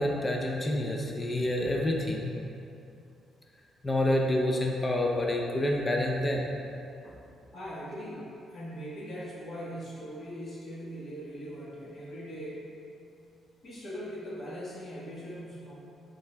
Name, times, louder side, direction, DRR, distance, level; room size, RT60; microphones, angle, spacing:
voice 1, 0.0-2.4 3.8-6.5 7.0-7.1, left 1 dB, 25° left, 0 dB, 0.5 m, -28 dB
voice 2, 7.5-12.7 13.6-15.8, equal, 45° left, -7 dB, 1.3 m, -40 dB
5.4 x 3.8 x 2.2 m, 2.7 s
cardioid pair, 90°, 0 cm